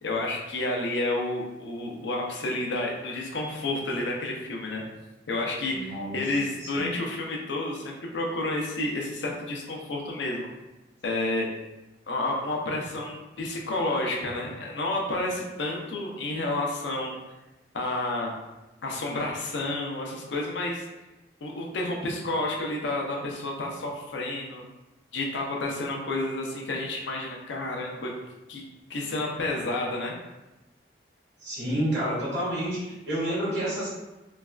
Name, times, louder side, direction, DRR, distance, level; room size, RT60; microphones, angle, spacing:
voice 1, 0.0-4.8 5.3-10.5 11.0-11.5 12.1-17.2 17.7-18.3 18.8-20.9 21.4-24.6 25.1-28.1 28.5-28.6 28.9-30.1, left 2 dB, 80° left, -1 dB, 0.6 m, -30 dB
voice 2, 5.7-6.2 6.7-6.9 31.4-33.9, right 1 dB, 80° right, -8 dB, 1.4 m, -29 dB
3.2 x 2.3 x 2.3 m, 1.0 s
head